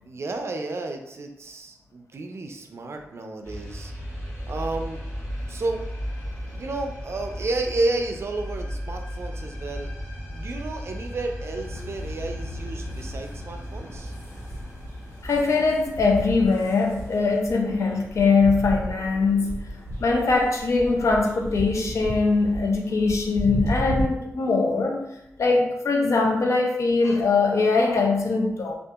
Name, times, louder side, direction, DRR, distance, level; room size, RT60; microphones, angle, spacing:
voice 1, 0.1-3.9 4.5-5.0 5.5-5.8 6.4-9.9 10.3-14.1, right 2 dB, 55° right, 0.3 m, -31 dB
sound 1, 3.4-19.2, equal, 45° left, 0.9 m, -36 dB
sound 2, 11.6-24.0, equal, 90° left, 1.3 m, -35 dB
voice 2, 15.2-19.6 20.0-25.1 25.4-28.8, left 3 dB, 65° left, 0.5 m, -22 dB
2.7 x 2.4 x 2.3 m
wide cardioid pair, 85°, 5 cm